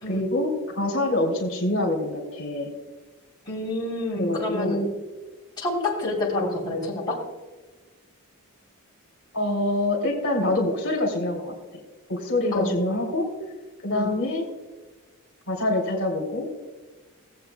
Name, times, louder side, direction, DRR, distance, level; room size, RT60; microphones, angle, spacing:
voice 1, 0.1-2.7 4.2-4.9 9.3-11.5 12.1-13.3 13.8-14.4 15.5-16.5, left 1 dB, 65° left, 0 dB, 2.6 m, -25 dB
voice 2, 3.5-4.9 5.6-7.2 12.5-12.7 13.9-14.1, left 2 dB, 20° left, -5 dB, 3.0 m, -28 dB
18.5 x 8.0 x 2.2 m, 1.3 s
head